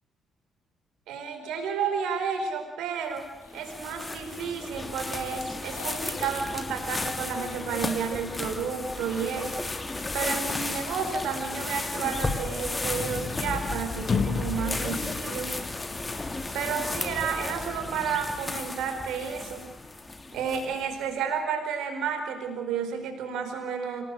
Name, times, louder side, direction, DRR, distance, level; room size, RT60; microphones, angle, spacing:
voice 1, 1.1-3.2 3.5-9.6 10.1-15.5 16.5-19.6 20.3-24.0, right 6 dB, 65° right, 6 dB, 4.6 m, -31 dB
sound 1, 1.4-2.7 3.4-4.6 5.6-6.4, left 2 dB, 85° left, 4.5 m, -47 dB
sound 2, 3.2-20.9, left 2 dB, 25° left, 3.1 m, -34 dB
sound 3, 12.8-18.2, left 5 dB, 40° left, 1.8 m, -34 dB
26.5 x 18.5 x 6.6 m, 1.0 s
figure-of-eight pair, 45°, 0 cm